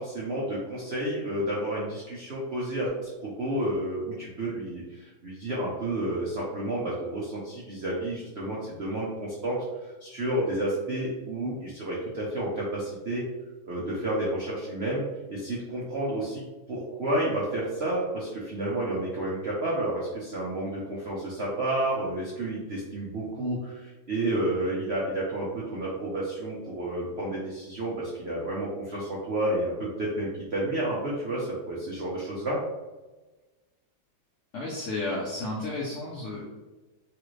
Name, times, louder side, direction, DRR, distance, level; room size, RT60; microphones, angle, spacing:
voice 1, 0.0-13.2 13.6-15.0 15.3-16.4 16.7-32.6, right 1 dB, 80° right, -5 dB, 0.5 m, -30 dB
voice 2, 34.5-36.4, left 2 dB, 70° left, -6 dB, 0.7 m, -32 dB
3.2 x 2.5 x 3.1 m, 1.2 s
omnidirectional pair, 2.0 m